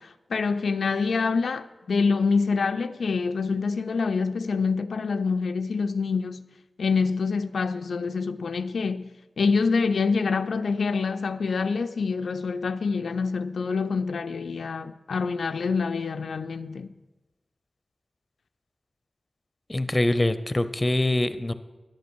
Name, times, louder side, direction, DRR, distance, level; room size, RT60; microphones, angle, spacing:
voice 1, 0.0-6.5 6.8-9.1 9.4-16.9, left 4 dB, 85° left, 0.3 m, -26 dB
voice 2, 19.7-21.5, left 1 dB, 25° left, 0.6 m, -24 dB
10.5 x 8.3 x 6.1 m
cardioid pair, 60°, 0 cm